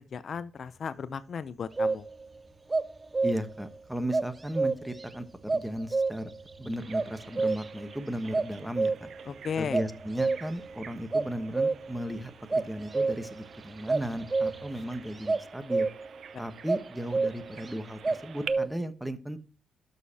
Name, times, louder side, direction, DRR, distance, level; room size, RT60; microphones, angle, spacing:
voice 1, 0.1-2.1 9.3-9.8, left 6 dB, 55° left, 15 dB, 0.6 m, -35 dB
sound 1, 0.6-15.3, right 3 dB, 45° right, 2.5 m, -59 dB
sound 2, 1.8-2.3 2.7-3.6 4.1-5.1 5.5-6.4 6.9-7.9 8.3-9.2 9.7-10.7 11.1-12.1 12.5-13.4 13.9-14.7 15.3-16.2 16.7-17.7 18.0-18.8, right 3 dB, 25° right, 0.4 m, -28 dB
voice 2, 3.2-5.3 5.5-6.3 6.6-9.1 9.6-15.9 16.4-19.4, equal, 5° right, 11 dB, 1.1 m, -35 dB
Bird vocalization bird call bird song, 6.7-18.5, right 8 dB, 65° right, 0.6 m, -49 dB
12.5 x 6.6 x 2.9 m, 0.37 s
cardioid pair, 105°, 0 cm